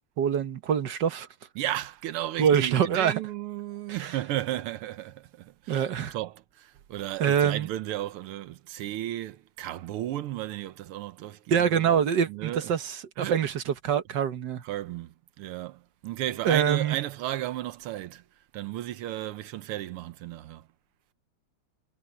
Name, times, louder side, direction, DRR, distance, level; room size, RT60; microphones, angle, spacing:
voice 1, 0.2-1.3 2.4-3.1 3.9-4.2 5.7-6.1 7.2-7.7 11.5-14.6 16.4-17.0, right 8 dB, 60° right, 1.5 m, -25 dB
voice 2, 1.6-11.9 12.3-12.7 13.2-13.4 14.6-18.2 18.5-20.7, right 14 dB, 85° right, 1.8 m, -34 dB
omnidirectional pair, 2.4 m